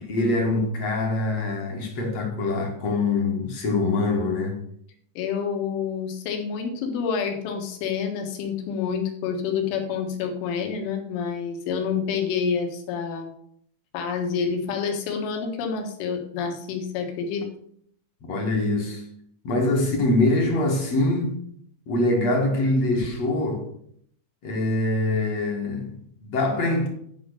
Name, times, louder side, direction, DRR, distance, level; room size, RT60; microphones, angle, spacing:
voice 1, 0.0-4.6 18.2-19.0 19.4-21.4 21.9-23.7 24.4-26.9, left 2 dB, 55° left, 1.8 m, -24 dB
voice 2, 5.2-13.3 13.9-17.5, left 6 dB, 85° left, 4.0 m, -28 dB
11.5 x 5.4 x 6.7 m
omnidirectional pair, 5.3 m